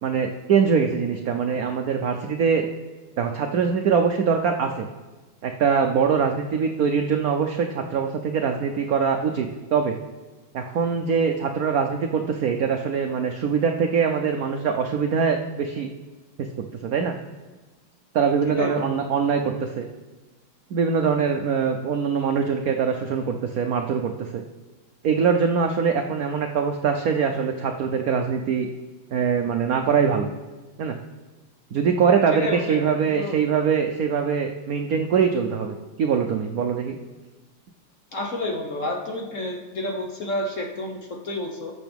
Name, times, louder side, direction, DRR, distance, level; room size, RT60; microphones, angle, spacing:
voice 1, 0.0-2.7 3.2-4.9 5.4-10.0 10.5-15.9 16.4-16.5 16.8-17.1 18.1-19.9 20.7-24.4 25.0-28.7 29.1-30.3 30.8-31.0 31.7-37.0, right 6 dB, 85° right, 4 dB, 0.7 m, -23 dB
voice 2, 18.4-18.9 32.3-33.4 38.1-41.7, left 1 dB, 50° left, 1 dB, 1.1 m, -30 dB
20.0 x 6.8 x 3.5 m, 1.2 s
omnidirectional pair, 2.3 m